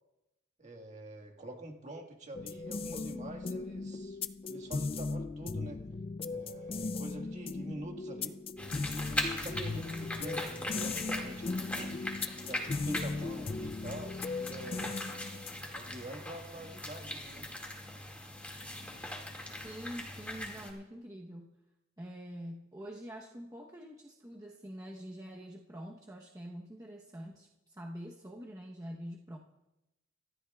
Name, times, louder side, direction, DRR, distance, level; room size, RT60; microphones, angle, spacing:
voice 1, 0.6-4.2 4.4-5.8 6.2-8.4 9.0-12.0 12.4-15.0 15.7-17.5, right 1 dB, 35° right, 3 dB, 1.7 m, -46 dB
sound 1, 2.3-15.8, left 3 dB, 30° left, 0.3 m, -38 dB
sound 2, 8.6-20.7, left 1 dB, 5° left, 2.1 m, -40 dB
voice 2, 19.6-21.5 22.0-29.4, equal, 15° right, -2 dB, 0.9 m, -45 dB
24.5 x 13.5 x 2.4 m, 0.93 s
head